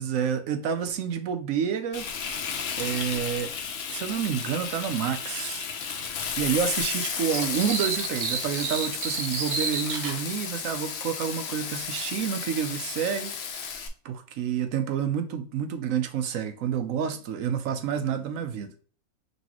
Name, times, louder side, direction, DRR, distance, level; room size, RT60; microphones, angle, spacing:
voice 1, 0.0-2.1 2.8-3.5 3.9-5.7 6.4-13.3 13.6-13.7 14.0-18.7, right 8 dB, 70° right, 0.9 m, -29 dB
Frying (food), 1.9-13.9, left 6 dB, 55° left, 0.7 m, -33 dB
sound 1, 7.3-10.2, right 5 dB, 85° right, 1.3 m, -31 dB
5.4 x 3.1 x 2.9 m
omnidirectional pair, 1.6 m